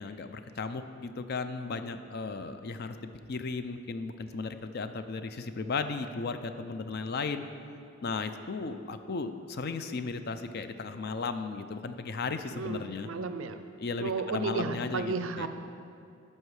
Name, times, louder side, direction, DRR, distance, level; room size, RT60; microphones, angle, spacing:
voice 1, 0.0-7.4 8.0-13.1 13.8-15.5, left 4 dB, 45° left, 9 dB, 0.4 m, -35 dB
voice 2, 12.5-13.7 14.0-15.5, right 4 dB, 65° right, 9 dB, 0.5 m, -33 dB
12.0 x 5.6 x 4.8 m, 2.5 s
head